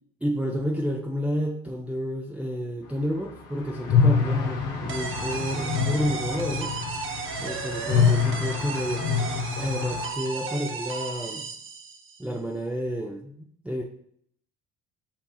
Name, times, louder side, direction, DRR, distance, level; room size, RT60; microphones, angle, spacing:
voice 1, 0.2-6.7 7.4-9.2 9.6-11.5 12.2-13.4 13.6-13.8, equal, 5° right, -2 dB, 0.6 m, -30 dB
sound 1, 3.8-10.1, left 6 dB, 70° left, 1.0 m, -26 dB
sound 2, 4.9-12.2, right 4 dB, 40° right, 0.8 m, -34 dB
7.3 x 2.7 x 2.4 m, 0.65 s
hypercardioid pair, 70°, 33 cm